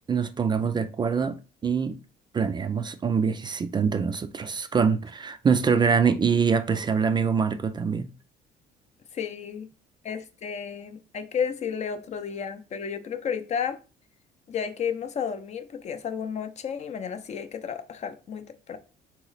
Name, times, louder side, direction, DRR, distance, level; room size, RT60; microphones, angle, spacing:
voice 1, 0.1-1.4 1.6-2.0 2.3-8.1, right 6 dB, 25° right, 0.4 m, -24 dB
voice 2, 9.1-9.7 10.0-13.8 14.5-18.8, left 7 dB, 40° left, 0.6 m, -32 dB
4.0 x 3.0 x 3.9 m
cardioid pair, 110°, 17 cm